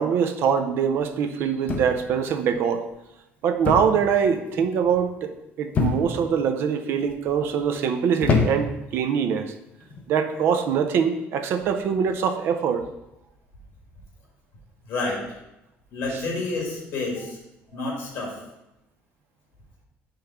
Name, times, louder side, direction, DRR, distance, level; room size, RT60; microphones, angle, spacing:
voice 1, 0.0-2.8 3.4-5.3 5.6-9.5 10.1-12.8, right 7 dB, 55° right, 8 dB, 0.5 m, -23 dB
sound 1, 1.7-2.2 3.6-4.0 4.3-4.7 5.7-6.3 7.0-7.4 8.2-8.9 9.8-10.1, left 4 dB, 30° left, 0.6 m, -25 dB
voice 2, 14.9-15.2 15.9-17.4 17.7-18.4, left 3 dB, 55° left, -2 dB, 2.2 m, -29 dB
5.3 x 3.5 x 5.6 m, 0.89 s
cardioid pair, 175°, 5 cm